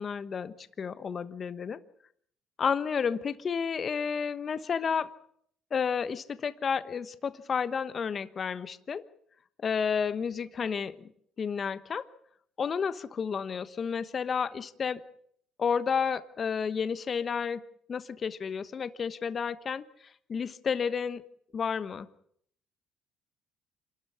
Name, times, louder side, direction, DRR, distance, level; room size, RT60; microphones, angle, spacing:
voice 1, 0.0-1.8 2.6-5.1 5.7-9.0 9.6-11.1 11.4-12.1 12.6-15.0 15.6-17.6 17.9-19.8 20.3-21.2 21.5-22.1, left 6 dB, 40° left, 13 dB, 1.2 m, -31 dB
27.0 x 13.0 x 9.5 m, 0.67 s
cardioid pair, 105°, 0 cm